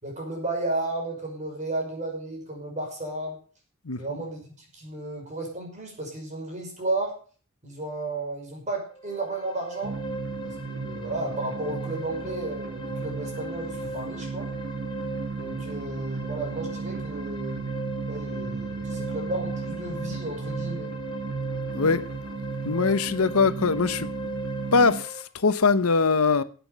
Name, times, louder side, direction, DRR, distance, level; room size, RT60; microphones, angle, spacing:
voice 1, 0.0-3.4 4.0-7.1 7.6-10.0 10.4-14.5 15.3-17.7 18.1-20.9, right 2 dB, 35° right, 5.8 m, -33 dB
sound 1, 8.9-25.2, right 1 dB, 25° left, 3.6 m, -39 dB
sound 2, 9.8-25.0, right 4 dB, 70° right, 1.3 m, -34 dB
voice 2, 21.7-22.0 22.6-24.1 24.7-26.4, left 4 dB, 90° left, 1.0 m, -22 dB
11.5 x 8.7 x 7.2 m
head